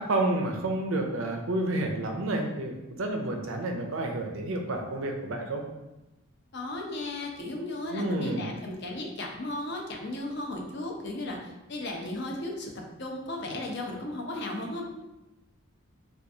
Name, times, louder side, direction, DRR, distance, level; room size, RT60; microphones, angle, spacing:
voice 1, 0.0-2.7 3.0-5.6 7.9-8.4, right 2 dB, 70° right, 3 dB, 0.5 m, -30 dB
voice 2, 6.5-12.7 13.0-14.8, left 1 dB, 50° left, 1 dB, 0.6 m, -35 dB
4.6 x 2.4 x 2.7 m, 1.0 s
head